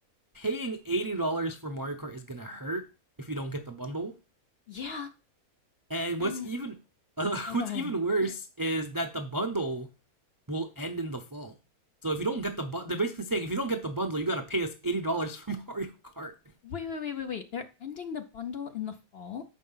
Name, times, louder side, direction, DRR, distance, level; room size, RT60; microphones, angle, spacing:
voice 1, 0.3-2.8 3.2-4.1 5.9-6.8 7.2-9.9 10.5-11.5 12.0-16.3, right 2 dB, 30° right, 0.4 m, -31 dB
voice 2, 4.7-5.1 6.2-6.5 7.5-7.9 8.2-8.3 16.6-19.4, left 7 dB, 55° left, 0.7 m, -37 dB
6.6 x 5.2 x 5.5 m
omnidirectional pair, 1.5 m